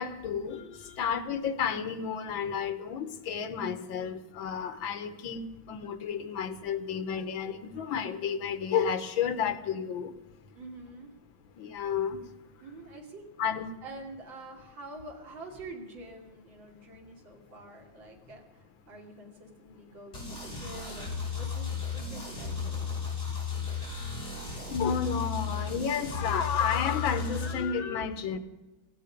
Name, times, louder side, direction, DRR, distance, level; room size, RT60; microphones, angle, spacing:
voice 1, 0.0-10.1 11.6-12.3 13.4-13.7 24.6-28.4, left 7 dB, 75° left, 11 dB, 1.7 m, -31 dB
voice 2, 10.5-11.1 12.6-13.3 13.8-23.0, right 2 dB, 65° right, 1 dB, 3.2 m, -46 dB
sound 1, 20.1-27.5, left 5 dB, 25° left, 6.4 m, -34 dB
17.5 x 15.5 x 5.2 m, 1.1 s
omnidirectional pair, 2.3 m